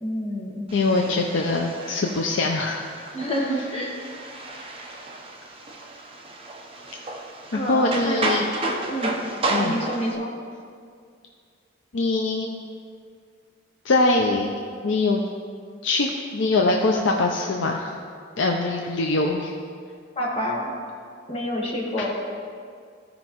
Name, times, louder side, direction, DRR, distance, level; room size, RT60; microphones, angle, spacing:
voice 1, 0.0-0.6 3.1-3.9 7.5-8.2 8.9-9.2 9.6-10.3 20.2-20.7 21.3-22.1, equal, 30° left, -3 dB, 1.3 m, -28 dB
voice 2, 0.7-2.8 7.5-8.5 9.5-9.8 11.9-12.6 13.8-14.6 14.8-15.2 15.8-17.9 18.4-19.5, left 3 dB, 75° left, 1 dB, 0.5 m, -23 dB
sound 1, 0.7-10.2, right 2 dB, 30° right, 0.7 m, -32 dB
14.5 x 5.2 x 3.0 m, 2.2 s
head